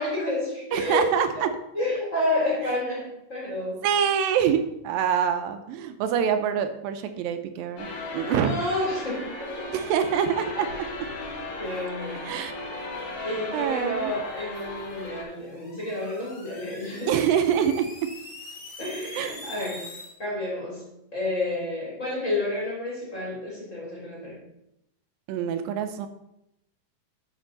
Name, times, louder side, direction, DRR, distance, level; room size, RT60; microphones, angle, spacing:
voice 1, 0.0-1.1 1.7-3.8 8.2-9.8 10.5-12.3 13.2-17.1 18.8-19.9 20.2-24.4, left 1 dB, 20° left, -6 dB, 3.0 m, -30 dB
voice 2, 0.7-1.5 3.8-7.9 8.1-8.6 9.7-10.7 12.2-12.5 13.5-14.1 17.1-17.9 19.2-19.4 25.3-26.1, right 8 dB, 90° right, 9 dB, 2.4 m, -25 dB
sound 1, 7.8-15.2, left 2 dB, 75° left, 3.6 m, -36 dB
sound 2, 15.3-20.1, left 2 dB, 50° left, 2.4 m, -43 dB
11.5 x 5.2 x 3.9 m, 0.83 s
omnidirectional pair, 4.0 m